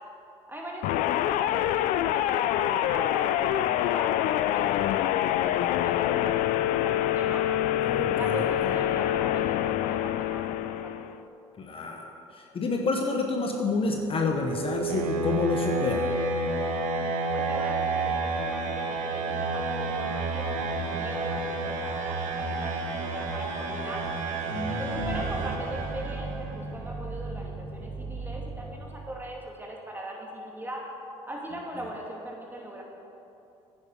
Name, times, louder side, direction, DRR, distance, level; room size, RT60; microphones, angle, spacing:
voice 1, 0.5-7.6 8.1-11.0 17.3-24.0 24.8-30.8 31.2-32.8, equal, 15° right, -2 dB, 2.8 m, -40 dB
sound 1, 0.8-11.2, left 12 dB, 70° left, 0.4 m, -26 dB
voice 2, 7.8-8.5 11.6-16.2 24.5-25.2, left 3 dB, 40° left, 2 dB, 1.2 m, -29 dB
sound 2, 13.7-26.5, right 3 dB, 60° right, 1.4 m, -30 dB
sound 3, 24.9-29.5, right 3 dB, 45° right, 1.7 m, -38 dB
10.0 x 9.6 x 5.0 m, 2.8 s
hypercardioid pair, 65°, 14 cm